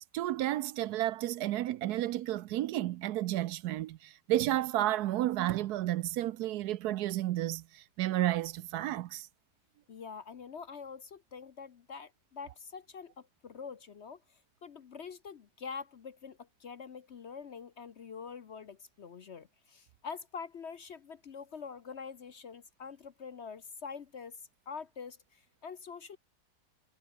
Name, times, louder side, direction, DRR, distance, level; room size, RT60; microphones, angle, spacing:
voice 1, 0.1-9.3, right 14 dB, 75° right, 1.1 m, -32 dB
voice 2, 9.9-26.2, left 6 dB, 50° left, 0.9 m, -45 dB
omnidirectional pair, 1.8 m